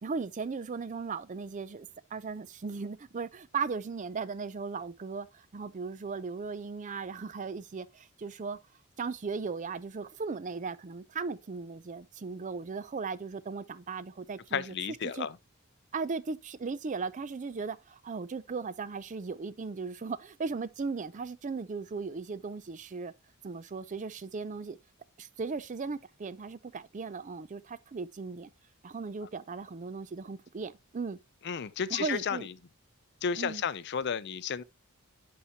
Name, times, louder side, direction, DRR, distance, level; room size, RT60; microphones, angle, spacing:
voice 1, 0.0-8.6 9.0-14.7 15.1-15.3 15.9-23.1 23.4-24.8 25.2-28.5 28.8-31.2 31.9-32.5 33.4-33.6, right 4 dB, 35° right, 0.4 m, -37 dB
voice 2, 14.5-15.4 31.4-32.5 33.2-34.6, left 7 dB, 50° left, 0.5 m, -32 dB
8.5 x 5.7 x 2.8 m
head